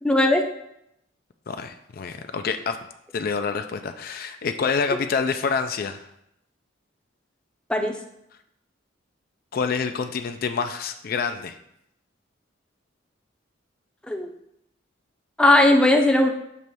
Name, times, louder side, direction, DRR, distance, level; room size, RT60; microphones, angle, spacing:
voice 1, 0.0-0.4 7.7-8.0 14.1-14.3 15.4-16.3, left 1 dB, 5° left, 2 dB, 0.6 m, -18 dB
voice 2, 1.5-2.8 3.1-6.0 9.5-11.6, left 5 dB, 50° left, 7 dB, 0.4 m, -27 dB
6.8 x 3.1 x 6.0 m, 0.79 s
head